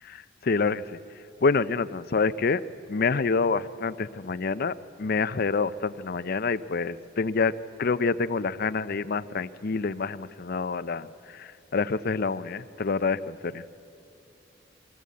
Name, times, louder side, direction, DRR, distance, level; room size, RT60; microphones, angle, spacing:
voice 1, 0.1-0.8 1.4-2.6 2.9-7.5 7.8-11.1 11.4-13.6, left 4 dB, 55° left, 14 dB, 0.6 m, -27 dB
23.5 x 16.5 x 8.5 m, 2.8 s
head